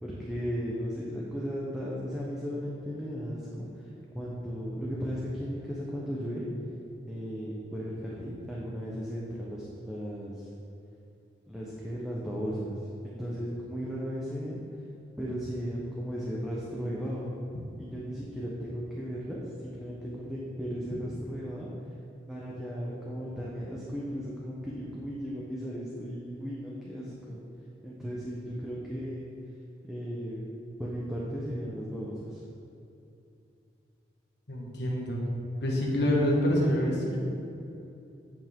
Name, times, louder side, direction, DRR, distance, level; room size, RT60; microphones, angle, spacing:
voice 1, 0.0-3.9 4.1-6.5 7.1-10.5 11.5-12.8 13.0-14.6 15.2-17.3 17.8-21.7 22.3-27.4 27.8-29.3 29.9-30.5 30.8-32.4, equal, 5° right, -6 dB, 0.9 m, -36 dB
voice 2, 34.5-35.2 35.6-37.2, left 1 dB, 65° left, -4 dB, 1.5 m, -26 dB
8.9 x 7.2 x 3.7 m, 2.7 s
head